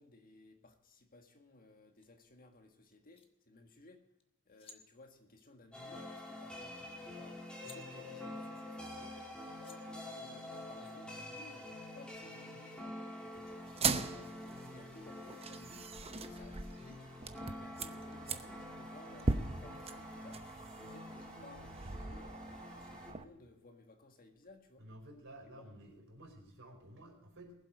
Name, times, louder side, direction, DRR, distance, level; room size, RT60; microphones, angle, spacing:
voice 1, 0.0-4.0 4.4-9.2 9.5-17.1 17.4-24.9 25.6-25.9, left 2 dB, 40° left, 5 dB, 1.7 m, -59 dB
sound 1, 2.0-2.1 2.9-3.3 4.2-4.3 4.5-4.8 6.7-6.8 7.1-7.8 9.2-9.3 9.6-9.8 10.7-10.9, left 4 dB, 25° left, 1.4 m, -58 dB
sound 2, 5.7-23.1, left 1 dB, 5° left, 2.7 m, -47 dB
sound 3, 13.7-23.2, right 4 dB, 25° right, 0.8 m, -40 dB
voice 2, 24.8-27.5, right 1 dB, 60° right, 1 dB, 4.8 m, -53 dB
20.5 x 7.9 x 5.1 m, 0.84 s
head